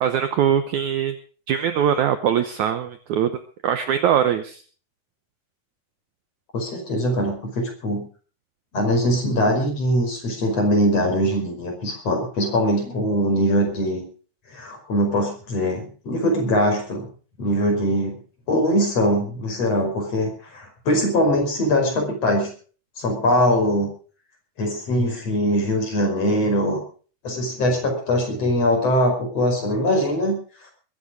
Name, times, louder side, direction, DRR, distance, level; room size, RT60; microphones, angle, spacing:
voice 1, 0.0-1.1 1.5-3.3 3.6-4.6, right 9 dB, 85° right, 10 dB, 1.7 m, -21 dB
voice 2, 6.5-8.1 8.7-14.0 14.5-17.1 17.4-18.2 18.5-22.5 23.0-23.9 24.6-26.8 27.2-30.3, equal, 40° left, 2 dB, 6.0 m, -22 dB
21.5 x 10.0 x 5.2 m, 0.41 s
omnidirectional pair, 4.7 m